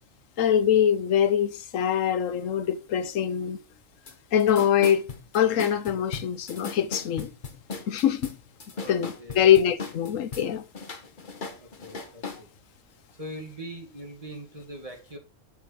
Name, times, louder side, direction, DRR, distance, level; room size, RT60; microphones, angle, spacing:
voice 1, 0.4-3.6 4.3-5.0 5.3-7.3 7.9-8.4 8.9-10.6, left 9 dB, 80° left, 1.2 m, -23 dB
sound 1, 4.1-4.2 4.4-10.5 10.7-12.4, left 4 dB, 40° left, 1.3 m, -37 dB
voice 2, 8.7-9.9 11.6-12.5 13.2-15.2, right 1 dB, 25° right, 2.2 m, -42 dB
7.1 x 7.1 x 4.5 m
omnidirectional pair, 1.3 m